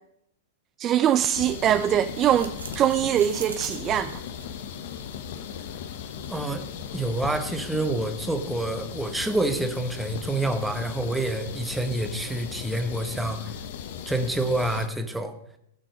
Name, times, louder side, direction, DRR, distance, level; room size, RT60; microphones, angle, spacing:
voice 1, 0.8-4.2, right 10 dB, 30° right, 0.4 m, -23 dB
sound 1, 1.3-14.9, left 8 dB, 55° left, 1.0 m, -37 dB
sound 2, 2.1-7.6, right 5 dB, 80° right, 1.4 m, -45 dB
voice 2, 6.3-6.7 6.9-13.5 14.1-15.3, right 2 dB, 5° right, 1.3 m, -27 dB
17.5 x 6.2 x 5.1 m
figure-of-eight pair, 105°, 0 cm